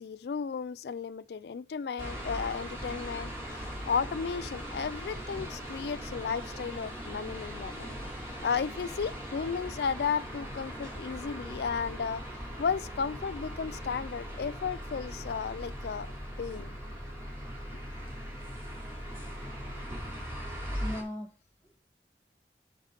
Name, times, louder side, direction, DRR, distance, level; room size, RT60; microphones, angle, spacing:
voice 1, 0.0-7.9 8.4-12.2 12.6-16.1 16.4-16.7, left 6 dB, 65° left, 0.3 m, -34 dB
sound 1, 2.0-21.0, equal, 15° right, 2.4 m, -40 dB
voice 2, 20.7-21.8, left 1 dB, 10° left, 1.1 m, -40 dB
6.6 x 5.8 x 5.0 m
head